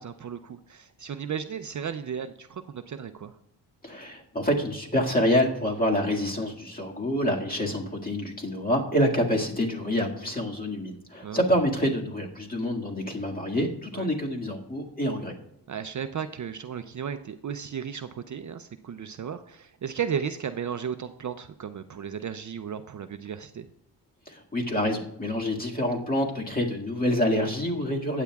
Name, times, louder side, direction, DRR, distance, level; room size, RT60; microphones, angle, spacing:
voice 1, 0.0-3.3 11.2-11.4 13.9-14.1 15.7-23.7, right 7 dB, 45° right, 9 dB, 0.5 m, -34 dB
voice 2, 3.8-15.3 24.3-28.2, equal, 20° left, 0 dB, 2.0 m, -27 dB
15.5 x 9.2 x 2.4 m, 0.80 s
wide cardioid pair, 105°, 41 cm